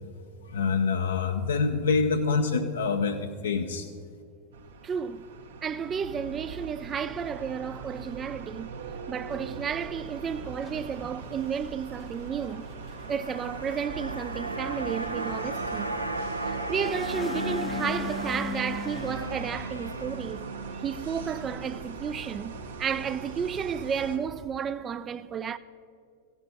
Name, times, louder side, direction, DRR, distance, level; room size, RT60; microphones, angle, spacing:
voice 1, 0.4-3.9, left 4 dB, 65° left, 0.5 m, -26 dB
sound 1, 4.5-24.2, right 4 dB, 65° right, 1.0 m, -41 dB
voice 2, 4.8-5.2 5.6-8.8 9.1-12.7 13.1-16.0 16.4-20.5 20.7-25.6, right 7 dB, 25° right, 0.3 m, -32 dB
sound 2, 9.2-19.6, left 4 dB, 20° left, 0.6 m, -41 dB
sound 3, 12.7-23.1 23.5-23.6, right 2 dB, 80° right, 0.6 m, -36 dB
15.0 x 8.2 x 4.0 m
figure-of-eight pair, 90°, 0 cm